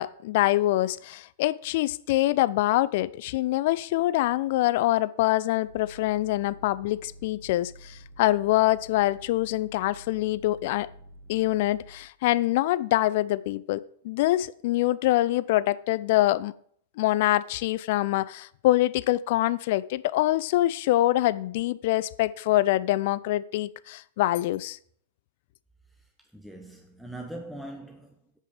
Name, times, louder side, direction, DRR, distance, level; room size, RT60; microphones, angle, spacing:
voice 1, 0.0-10.9 11.3-16.5 17.0-24.8, left 16 dB, 50° left, 0.4 m, -25 dB
sound 1, 5.6-12.1, equal, 45° right, 2.3 m, -49 dB
voice 2, 26.0-28.4, right 1 dB, ahead, 1.1 m, -42 dB
7.5 x 6.6 x 6.6 m
figure-of-eight pair, 100°, 0 cm